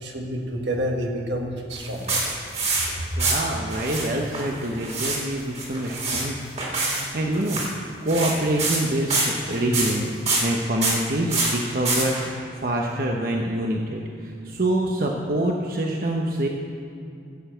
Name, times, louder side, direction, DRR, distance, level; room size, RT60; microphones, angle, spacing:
voice 1, 0.0-2.2, equal, 75° right, 2 dB, 1.6 m, -28 dB
sound 1, 1.7-2.9 3.2-4.1 4.3-5.2 5.5-6.2 6.6-7.0 7.3-7.7 8.1-8.8 9.1-10.0 10.2-10.4 10.8-11.0 11.3-12.2, right 3 dB, 40° right, 2.9 m, -25 dB
voice 2, 3.2-7.6 8.0-16.5, right 1 dB, 55° right, 0 dB, 0.9 m, -26 dB
11.5 x 7.1 x 7.8 m, 2.6 s
head